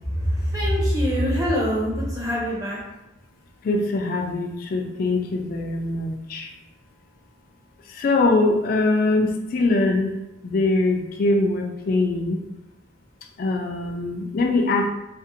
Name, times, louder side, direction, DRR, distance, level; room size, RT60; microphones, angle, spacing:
voice 1, 0.1-2.8, equal, 20° right, -4 dB, 0.6 m, -23 dB
voice 2, 3.6-6.5 7.9-10.1 10.4-12.4 13.4-14.9, left 2 dB, 45° left, 3 dB, 0.3 m, -22 dB
2.6 x 2.1 x 2.6 m, 0.90 s
head